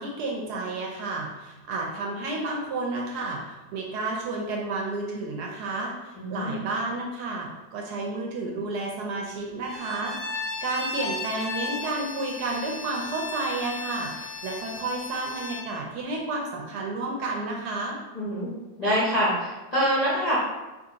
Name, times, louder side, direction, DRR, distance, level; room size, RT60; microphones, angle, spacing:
voice 1, 0.0-10.2 10.6-18.0, right 3 dB, 70° right, -1 dB, 1.0 m, -31 dB
voice 2, 6.2-6.6 18.1-18.5 18.8-20.4, equal, 45° left, -10 dB, 0.5 m, -25 dB
Bowed string instrument, 9.6-15.7, left 3 dB, 70° left, 0.9 m, -35 dB
2.8 x 2.5 x 3.7 m, 1.1 s
omnidirectional pair, 2.0 m